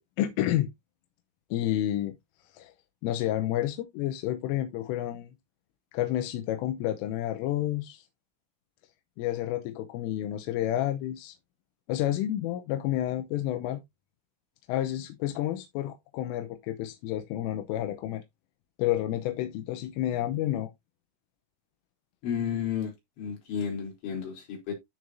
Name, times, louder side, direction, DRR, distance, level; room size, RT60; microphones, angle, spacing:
voice 1, 0.2-0.7 1.5-2.2 2.5-2.7 3.0-5.3 5.9-8.1 9.2-11.4 11.9-13.8 14.7-18.2 18.8-20.7, left 13 dB, 85° left, 3.4 m, -30 dB
voice 2, 22.2-22.9 23.2-24.7, left 8 dB, 65° left, 5.8 m, -32 dB
13.5 x 4.8 x 2.7 m
omnidirectional pair, 5.8 m